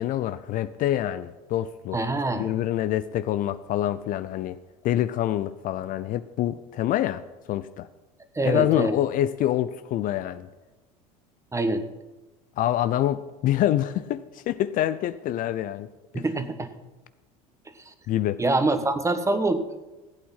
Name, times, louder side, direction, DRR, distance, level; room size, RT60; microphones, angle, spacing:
voice 1, 0.0-2.0 2.3-4.6 4.8-7.2 7.5-7.9 8.4-10.5 12.6-15.9 16.1-16.2 18.1-18.4, left 12 dB, 45° left, 0.5 m, -26 dB
voice 2, 1.9-2.5 8.3-8.9 11.5-11.8 16.1-16.7 17.8-17.9 18.4-19.6, right 2 dB, 15° right, 1.4 m, -25 dB
15.0 x 8.6 x 5.7 m
hypercardioid pair, 75°, 19 cm